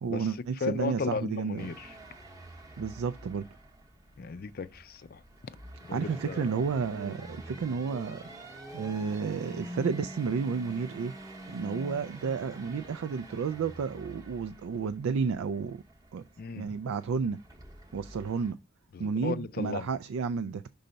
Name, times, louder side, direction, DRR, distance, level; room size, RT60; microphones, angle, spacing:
voice 1, 0.0-1.7 2.8-3.5 5.9-8.2 8.7-11.1 11.5-15.8 16.1-16.2 16.5-17.4 17.9-18.6 19.0-20.6, right 5 dB, 80° right, 0.3 m, -31 dB
voice 2, 0.6-1.9 4.2-5.2 5.9-6.6 16.4-16.7 18.9-19.9, left 4 dB, 45° left, 0.4 m, -35 dB
sound 1, 1.6-18.5, right 1 dB, 15° right, 0.8 m, -46 dB
5.6 x 3.9 x 5.1 m
head